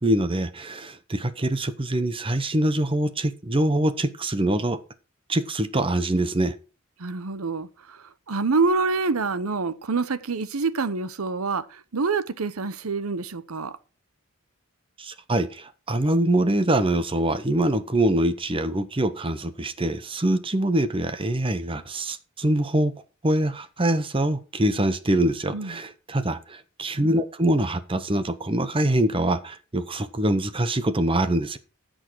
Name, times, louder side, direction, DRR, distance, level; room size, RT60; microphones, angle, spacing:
voice 1, 0.0-4.8 5.3-6.5 15.0-22.9 23.2-31.6, right 1 dB, 25° right, 0.9 m, -24 dB
voice 2, 7.0-7.7 8.3-11.6 11.9-13.7 25.5-25.8, right 4 dB, 85° right, 0.8 m, -26 dB
15.0 x 6.4 x 4.6 m
head